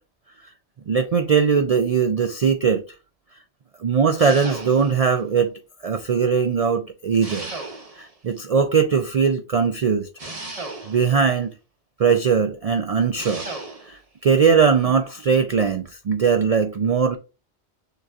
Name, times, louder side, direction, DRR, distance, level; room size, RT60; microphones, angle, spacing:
voice 1, 0.9-2.8 3.8-5.5 5.8-7.5 8.0-10.1 10.9-11.5 12.0-13.4 13.8-17.2, right 6 dB, 65° right, 0.3 m, -20 dB
sound 1, 4.2-5.1 7.2-8.2 10.2-11.2 13.2-14.0, right 2 dB, 35° right, 1.0 m, -35 dB
6.6 x 2.9 x 2.4 m
omnidirectional pair, 1.2 m